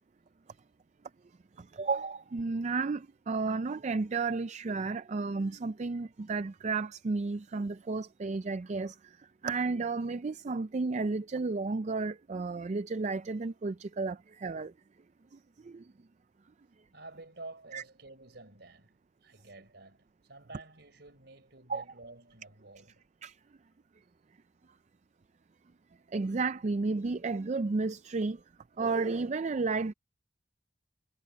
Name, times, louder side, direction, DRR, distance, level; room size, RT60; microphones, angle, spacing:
voice 1, 1.6-9.0 9.4-14.7 15.6-15.8 17.7-17.8 21.7-21.8 23.2-23.3 26.1-28.4 28.8-29.9, right 3 dB, 35° right, 0.4 m, -32 dB
voice 2, 16.9-23.1, right 2 dB, 60° right, 4.6 m, -50 dB
head